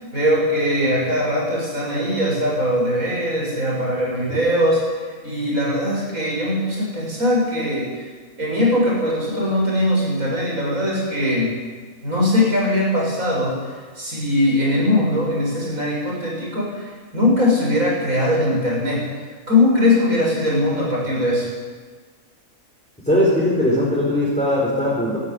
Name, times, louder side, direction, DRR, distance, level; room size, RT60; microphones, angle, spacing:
voice 1, 0.0-8.1 8.4-11.5 12.0-19.0 19.5-21.5, left 1 dB, 85° right, -4 dB, 8.3 m, -21 dB
voice 2, 23.0-25.2, left 1 dB, 5° left, -7 dB, 5.5 m, -19 dB
19.5 x 14.0 x 9.8 m, 1.5 s
omnidirectional pair, 1.4 m